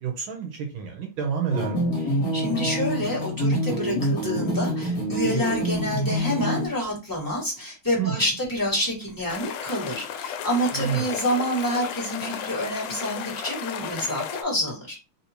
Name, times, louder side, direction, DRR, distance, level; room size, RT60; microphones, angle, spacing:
voice 1, 0.0-1.8 8.0-8.2 10.7-11.0, right 8 dB, 75° right, 2 dB, 1.4 m, -29 dB
sound 1, 1.5-6.7, right 1 dB, 55° left, 1.4 m, -26 dB
voice 2, 2.3-15.0, equal, 10° left, -5 dB, 1.0 m, -28 dB
sound 2, 9.3-14.4, left 8 dB, 85° left, 1.5 m, -34 dB
3.5 x 2.7 x 2.8 m, 0.30 s
omnidirectional pair, 2.4 m